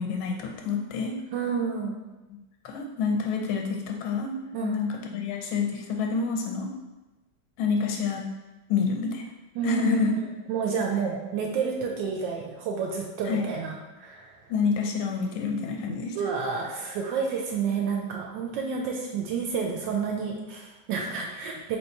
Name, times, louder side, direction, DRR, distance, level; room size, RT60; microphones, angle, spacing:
voice 1, 0.0-1.1 2.6-4.3 4.6-6.7 7.6-8.3 8.7-9.2 9.6-10.1 13.2-13.4 14.5-16.2, left 5 dB, 90° left, 1 dB, 1.5 m, -27 dB
voice 2, 1.3-2.0 4.5-4.8 9.5-14.4 16.1-21.8, right 6 dB, 75° right, 0 dB, 1.2 m, -30 dB
3.1 x 3.0 x 4.4 m, 1.1 s
omnidirectional pair, 2.2 m